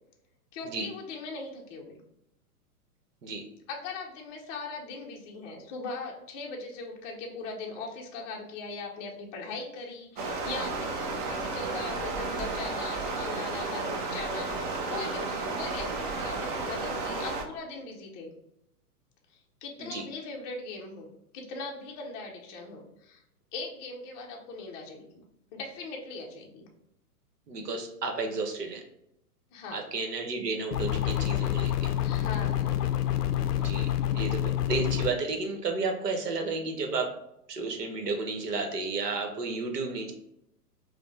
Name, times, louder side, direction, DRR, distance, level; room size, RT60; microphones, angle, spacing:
voice 1, 0.5-2.0 3.7-18.3 19.3-23.2 23.5-25.2 25.5-26.7 29.5-29.8 32.0-32.7, left 3 dB, 20° left, -1 dB, 0.5 m, -40 dB
Stream, 10.2-17.4, right 3 dB, 35° right, 0.6 m, -32 dB
voice 2, 27.5-28.8 29.7-31.9 33.5-37.1 37.5-40.1, right 3 dB, 80° right, 4 dB, 1.0 m, -32 dB
sound 1, 30.7-35.1, left 11 dB, 80° left, 0.5 m, -27 dB
5.0 x 2.1 x 3.2 m, 0.80 s
hypercardioid pair, 120°, 47 cm